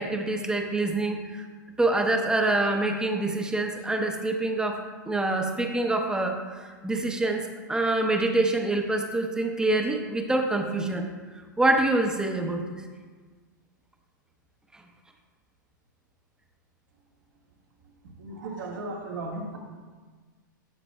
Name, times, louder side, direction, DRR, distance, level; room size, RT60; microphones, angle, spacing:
voice 1, 0.0-1.5 1.8-4.8 5.1-11.1 11.6-12.8 14.7-14.8, right 2 dB, 5° right, 4 dB, 0.8 m, -26 dB
voice 2, 18.2-19.6, right 2 dB, 70° right, 0 dB, 1.6 m, -35 dB
12.0 x 6.0 x 2.2 m, 1.4 s
hypercardioid pair, 110°, 11 cm